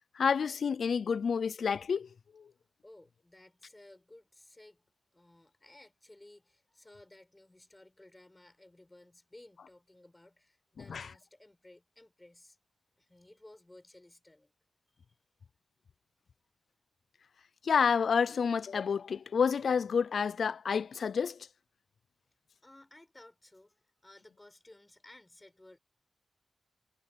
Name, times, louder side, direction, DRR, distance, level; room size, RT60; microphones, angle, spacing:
voice 1, 0.2-2.1 2.4-2.5 10.9-11.0 17.6-21.4, left 6 dB, 75° left, 0.5 m, -29 dB
voice 2, 2.8-4.8 5.1-12.6 13.0-14.5 22.6-25.8, left 1 dB, 20° left, 5.6 m, -57 dB
cardioid pair, 60°, 0 cm